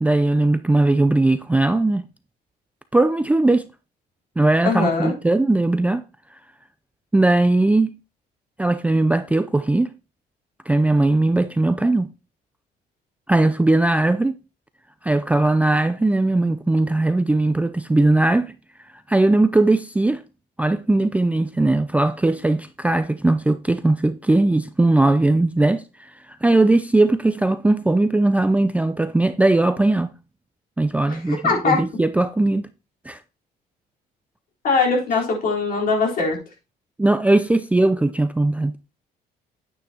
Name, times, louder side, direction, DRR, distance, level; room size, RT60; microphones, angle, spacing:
voice 1, 0.0-2.1 2.9-3.7 4.4-6.0 7.1-7.9 8.6-9.9 10.7-12.1 13.3-14.3 15.0-18.5 19.1-20.2 20.6-25.8 26.4-30.1 30.8-32.7 33.1-33.2 37.0-38.7, right 2 dB, 10° right, 0.4 m, -19 dB
voice 2, 4.6-5.1 31.1-31.8 34.6-36.4, left 4 dB, 60° left, 3.8 m, -21 dB
9.3 x 9.1 x 2.8 m
cardioid pair, 110°, 17 cm